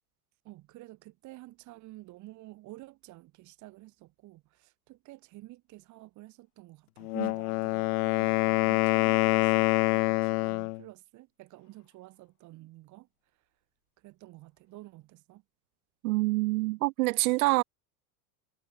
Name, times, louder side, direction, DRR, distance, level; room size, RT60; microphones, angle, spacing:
voice 1, 0.4-13.5 14.0-15.4, right 18 dB, 40° right, 7.3 m, -51 dB
Wind instrument woodwind instrument, 7.0-10.8, left 20 dB, 75° left, 1.5 m, -26 dB
voice 2, 16.0-17.6, right 22 dB, 70° right, 1.3 m, -26 dB
supercardioid pair, 165°, 45 cm